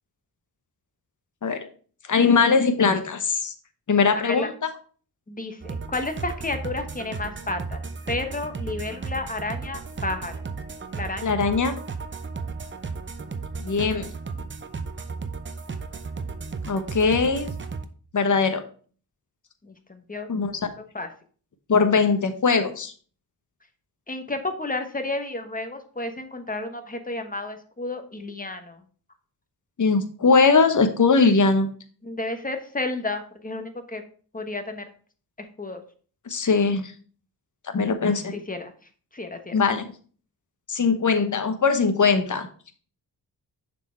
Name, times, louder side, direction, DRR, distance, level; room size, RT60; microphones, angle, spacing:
voice 1, 2.1-3.5 3.9-4.5 11.2-11.7 13.6-14.1 16.7-17.5 18.1-18.6 20.3-20.5 21.7-22.9 29.8-31.7 36.3-36.9 37.7-38.3 39.5-39.8 40.7-42.5, left 4 dB, 50° left, 8 dB, 1.0 m, -20 dB
voice 2, 5.3-7.8 8.1-10.3 10.9-11.3 11.7-11.8 19.6-20.3 20.9-21.1 24.1-28.8 32.0-34.0 34.3-34.9 35.4-35.8 38.1-38.7 39.1-39.5, left 2 dB, 20° left, 7 dB, 1.1 m, -32 dB
sound 1, 5.6-17.8, right 4 dB, 30° right, 0.6 m, -34 dB
6.7 x 4.5 x 4.4 m, 0.43 s
cardioid pair, 80°, 40 cm